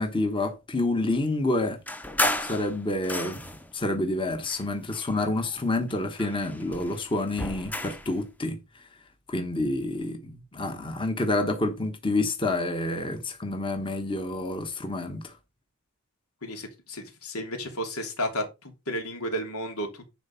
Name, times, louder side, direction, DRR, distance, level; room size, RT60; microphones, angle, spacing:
voice 1, 0.0-1.8 2.4-3.4 3.7-8.8 9.3-15.3, left 2 dB, 25° left, 1.2 m, -28 dB
sound 1, 1.9-3.7 4.4-5.6 5.9-8.1, left 1 dB, 5° left, 0.7 m, -32 dB
voice 2, 16.4-20.1, equal, 85° left, 3.0 m, -33 dB
10.5 x 4.2 x 5.6 m
head